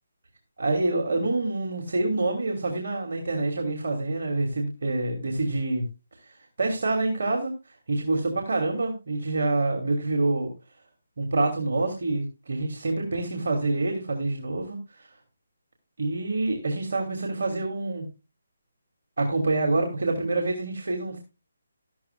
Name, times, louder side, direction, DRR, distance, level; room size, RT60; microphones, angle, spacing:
voice 1, 0.6-5.8 6.2-7.5 7.9-10.5 11.2-15.1 16.0-18.0 19.2-21.2, right 2 dB, 65° right, 2 dB, 3.1 m, -27 dB
13.5 x 13.5 x 2.4 m, 0.27 s
figure-of-eight pair, 155°, 0 cm